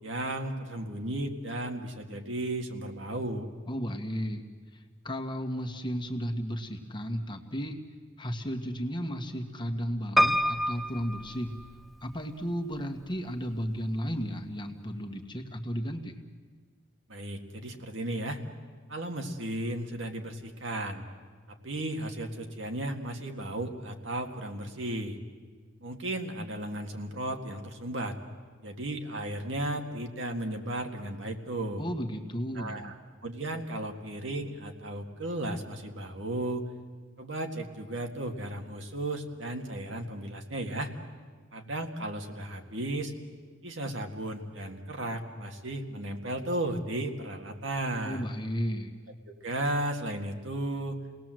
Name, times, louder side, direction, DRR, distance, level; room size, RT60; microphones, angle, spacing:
voice 1, 0.0-3.5 17.1-18.4 18.9-21.0 21.5-25.2 25.8-28.2 28.6-31.8 32.6-32.9 33.2-36.7 37.2-40.9 41.5-43.1 43.6-48.3 49.4-51.0, right 1 dB, 65° right, 4 dB, 2.0 m, -34 dB
voice 2, 3.7-4.4 4.7-7.8 8.2-11.5 12.0-16.2 31.8-32.9 48.0-49.0, equal, 25° left, 3 dB, 1.6 m, -34 dB
Piano, 10.2-12.1 12.8-13.5 13.8-13.9 14.1-14.2, equal, ahead, 0.6 m, -27 dB
29.0 x 19.0 x 7.7 m, 1.5 s
head